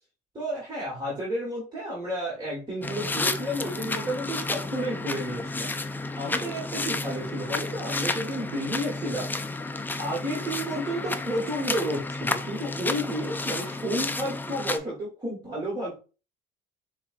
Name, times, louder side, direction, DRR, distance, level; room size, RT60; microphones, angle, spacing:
voice 1, 0.3-5.7 6.2-9.3 10.0-16.0, equal, 25° right, -5 dB, 1.6 m, -31 dB
sound 1, 2.8-14.8, left 2 dB, 10° left, 0.4 m, -31 dB
6.8 x 2.4 x 2.6 m, 0.33 s
cardioid pair, 110°, 17 cm